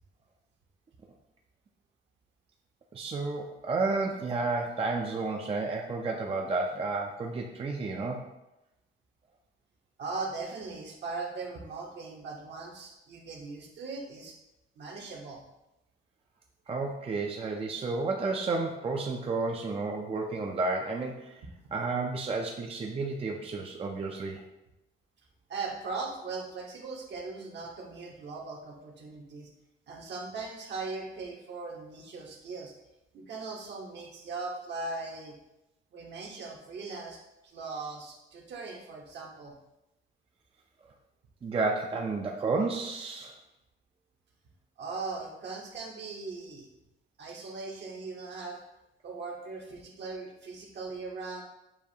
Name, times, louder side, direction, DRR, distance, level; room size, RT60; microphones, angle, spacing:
voice 1, 2.9-8.3 16.7-21.4 21.7-24.4 41.4-43.4, right 3 dB, 30° right, 1 dB, 0.5 m, -31 dB
voice 2, 10.0-14.4 14.8-15.4 25.5-29.5 29.9-32.7 33.1-35.4 35.9-39.5 44.8-46.7 47.2-48.6 49.0-51.4, right 3 dB, 60° right, -1 dB, 1.1 m, -39 dB
6.9 x 2.5 x 2.8 m, 0.94 s
cardioid pair, 90°, 20 cm